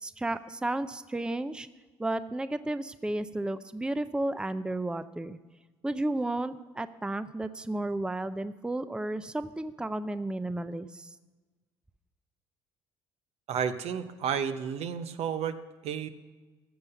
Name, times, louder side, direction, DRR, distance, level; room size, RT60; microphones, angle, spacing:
voice 1, 0.0-1.7 2.0-5.4 5.8-11.1, right 2 dB, 5° right, 13 dB, 0.5 m, -33 dB
voice 2, 13.5-16.1, right 7 dB, 60° right, 10 dB, 0.8 m, -32 dB
14.0 x 6.9 x 6.8 m, 1.3 s
supercardioid pair, 70°, 12 cm